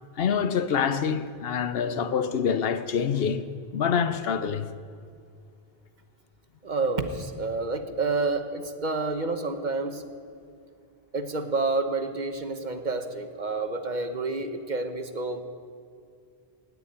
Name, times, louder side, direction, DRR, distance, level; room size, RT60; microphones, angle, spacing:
voice 1, 0.2-4.7, left 7 dB, 70° left, 0.9 m, -26 dB
voice 2, 6.6-10.0 11.1-15.4, right 3 dB, 50° right, 1.1 m, -29 dB
16.5 x 7.0 x 9.9 m
omnidirectional pair, 1.0 m